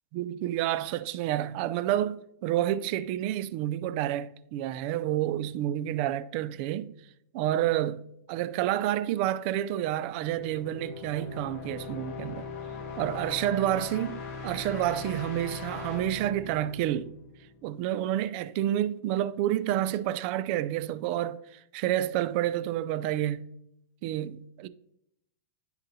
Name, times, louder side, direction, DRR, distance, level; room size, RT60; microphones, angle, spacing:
voice 1, 0.1-6.9 7.3-12.5 13.0-17.1 17.6-23.4 24.0-24.7, right 12 dB, 45° right, 0.4 m, -29 dB
sound 1, 10.1-17.8, left 5 dB, 45° left, 1.3 m, -40 dB
11.0 x 4.0 x 2.7 m
supercardioid pair, 145°, 9 cm